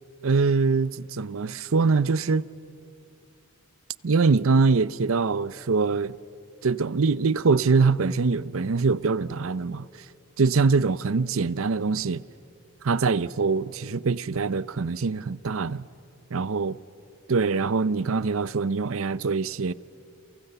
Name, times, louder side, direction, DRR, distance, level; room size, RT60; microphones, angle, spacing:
voice 1, 0.2-2.4 4.0-6.1 6.6-9.9 10.4-12.2 12.8-15.9 16.3-16.8 17.3-19.7, right 4 dB, 75° right, 0.6 m, -23 dB
30.0 x 29.0 x 6.9 m
head